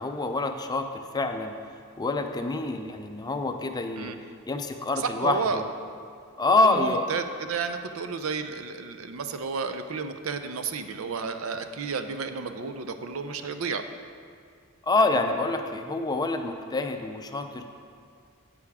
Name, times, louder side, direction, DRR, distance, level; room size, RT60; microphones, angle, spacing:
voice 1, 0.0-1.5 2.0-4.1 4.5-5.7 6.4-7.1 14.8-17.6, left 2 dB, 20° left, 6 dB, 0.4 m, -26 dB
voice 2, 5.0-5.6 6.6-13.8, right 5 dB, 75° right, 8 dB, 0.5 m, -32 dB
9.6 x 8.4 x 3.5 m, 2.2 s
head